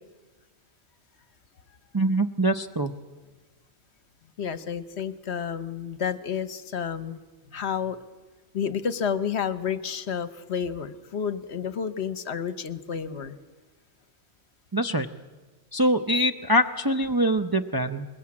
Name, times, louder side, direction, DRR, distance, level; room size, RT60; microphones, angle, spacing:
voice 1, 1.9-2.9 14.7-15.1 15.7-18.1, right 1 dB, 25° right, 6 dB, 0.5 m, -24 dB
voice 2, 4.4-7.2 7.5-8.0 8.5-13.4, left 7 dB, 65° left, 13 dB, 1.1 m, -30 dB
21.5 x 20.5 x 8.6 m, 1.3 s
omnidirectional pair, 1.3 m